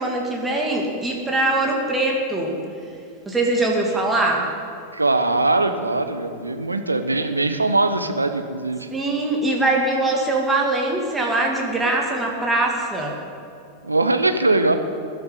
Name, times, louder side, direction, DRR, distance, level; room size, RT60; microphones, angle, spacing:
voice 1, 0.0-2.6 3.3-4.5 8.9-13.2, right 2 dB, 10° right, -1 dB, 2.4 m, -22 dB
voice 2, 4.9-8.9 13.8-14.7, right 2 dB, 80° right, 8 dB, 1.0 m, -21 dB
21.0 x 12.0 x 4.0 m, 2.6 s
figure-of-eight pair, 90°, 0 cm